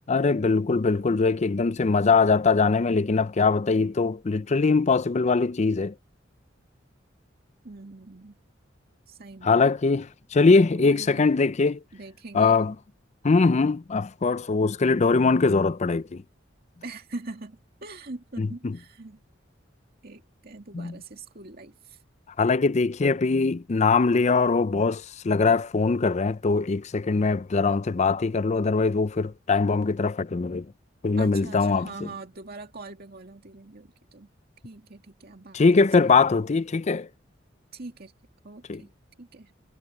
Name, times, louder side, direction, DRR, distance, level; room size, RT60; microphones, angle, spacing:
voice 1, 0.1-5.9 9.4-11.8 12.3-12.7 13.2-16.2 18.4-18.7 20.7-20.9 22.4-30.7 31.0-31.9 35.5-37.1 38.7-38.8, left 4 dB, 35° left, 0.5 m, -22 dB
voice 2, 7.6-8.4 9.1-9.6 10.8-11.3 11.9-12.6 16.8-19.2 20.0-22.0 31.2-34.3 34.6-35.7 36.0-36.1 37.7-38.1 38.4-38.9 39.2-39.5, right 3 dB, 55° right, 2.2 m, -42 dB
head